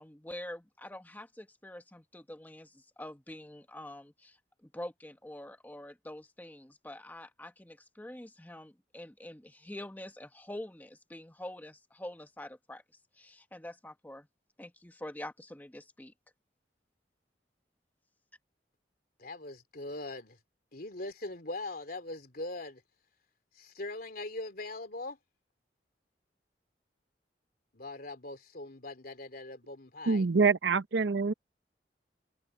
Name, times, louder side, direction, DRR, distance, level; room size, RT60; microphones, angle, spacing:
voice 1, 0.0-12.8 13.1-14.3 14.6-16.1, left 1 dB, 10° left, 0.9 m, -46 dB
voice 2, 19.2-20.4 20.7-22.8 23.6-25.2 27.7-30.2, left 2 dB, 55° left, 3.3 m, -41 dB
voice 3, 30.1-31.3, right 4 dB, 85° right, 0.7 m, -25 dB
head